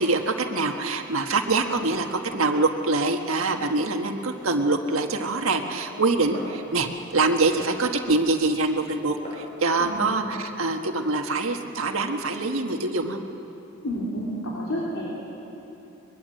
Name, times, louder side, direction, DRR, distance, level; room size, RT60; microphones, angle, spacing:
voice 1, 0.0-13.2, right 3 dB, 85° right, 4 dB, 1.6 m, -24 dB
Glass, 4.4-9.5, equal, 30° left, 6.1 m, -47 dB
voice 2, 9.8-10.2 13.8-15.1, equal, 80° left, -5 dB, 3.6 m, -30 dB
23.0 x 22.0 x 7.8 m, 3.0 s
head